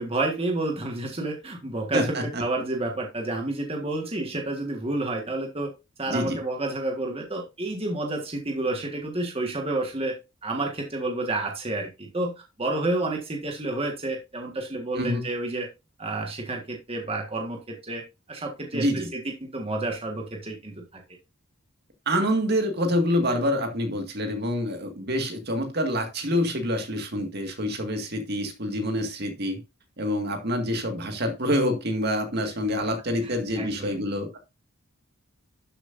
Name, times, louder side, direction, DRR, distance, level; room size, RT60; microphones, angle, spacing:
voice 1, 0.0-5.7 6.0-10.2 10.4-15.7 16.0-18.0 18.3-21.0 33.2-34.0, right 2 dB, 30° right, 1.6 m, -30 dB
voice 2, 1.9-2.4 6.1-6.4 15.0-15.2 18.7-19.1 22.1-29.6 30.0-34.4, equal, 50° right, 2.0 m, -26 dB
12.0 x 7.6 x 2.6 m
head